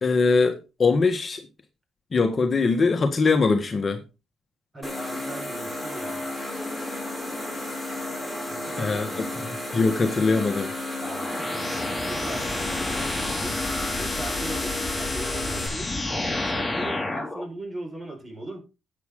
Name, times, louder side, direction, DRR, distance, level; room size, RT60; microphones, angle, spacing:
voice 1, 0.0-1.4 2.1-4.0 8.8-9.1 9.7-10.7, left 4 dB, 35° left, 1.6 m, -22 dB
voice 2, 4.7-6.2 8.5-9.4 11.0-11.5 12.0-13.6 14.0-18.6, right 1 dB, 20° right, 5.1 m, -39 dB
sound 1, 4.8-15.7, left 1 dB, ahead, 7.2 m, -33 dB
sound 2, 11.0-17.4, left 2 dB, 15° left, 2.6 m, -30 dB
11.5 x 8.8 x 3.8 m
cardioid pair, 90°, 0 cm